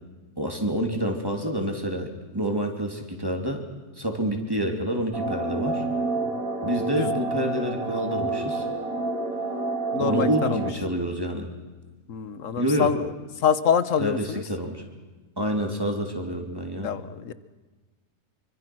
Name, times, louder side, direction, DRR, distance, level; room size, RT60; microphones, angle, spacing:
voice 1, 0.4-3.6 4.0-5.8 6.6-8.7 10.0-11.5 12.6-12.9 14.0-14.8 15.4-16.9, equal, 15° right, 3 dB, 3.1 m, -28 dB
sound 1, 5.1-10.7, right 3 dB, 60° right, 2.6 m, -28 dB
voice 2, 9.9-10.6 12.1-13.1 13.4-14.4 16.8-17.3, left 8 dB, 55° left, 14 dB, 1.3 m, -25 dB
26.0 x 25.0 x 6.2 m, 1.3 s
omnidirectional pair, 1.7 m